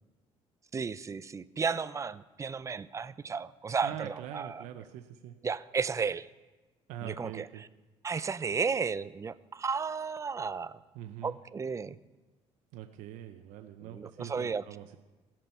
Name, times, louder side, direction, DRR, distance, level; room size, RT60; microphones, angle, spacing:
voice 1, 0.7-4.6 5.4-6.3 7.0-7.5 8.0-10.7 11.2-12.0 13.9-14.6, right 5 dB, 25° right, 16 dB, 0.5 m, -33 dB
voice 2, 3.8-5.4 6.9-7.6 10.9-11.4 12.7-15.0, right 11 dB, 85° right, 6 dB, 0.7 m, -43 dB
16.5 x 7.4 x 5.6 m, 1.2 s
cardioid pair, 100°, 12 cm